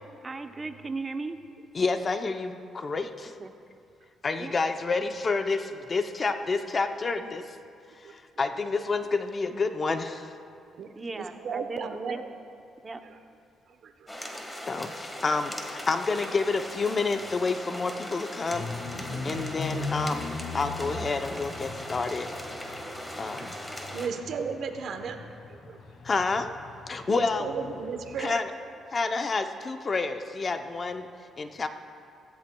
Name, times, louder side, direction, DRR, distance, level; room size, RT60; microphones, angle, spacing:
voice 1, 0.2-1.4 3.4-3.5 4.4-4.5 10.9-12.2 12.8-13.0, right 3 dB, 25° right, 7 dB, 0.7 m, -36 dB
voice 2, 1.7-3.3 4.2-7.6 8.0-10.3 14.7-22.3 23.2-23.5 26.0-26.5 26.9-27.5 28.2-28.5 28.9-31.1 31.4-31.7, left 4 dB, 35° left, 8 dB, 0.6 m, -29 dB
voice 3, 10.8-12.3 13.0-13.1 13.8-13.9 19.0-19.4 22.8-22.9 23.4-23.5 23.9-25.8 27.1-28.4, right 5 dB, 65° right, 6 dB, 0.9 m, -35 dB
sound 1, 14.1-24.1, equal, 10° left, 1.5 m, -39 dB
sound 2, 18.5-28.2, left 3 dB, 70° left, 1.9 m, -39 dB
16.0 x 15.0 x 2.3 m, 2.5 s
cardioid pair, 90°, 0 cm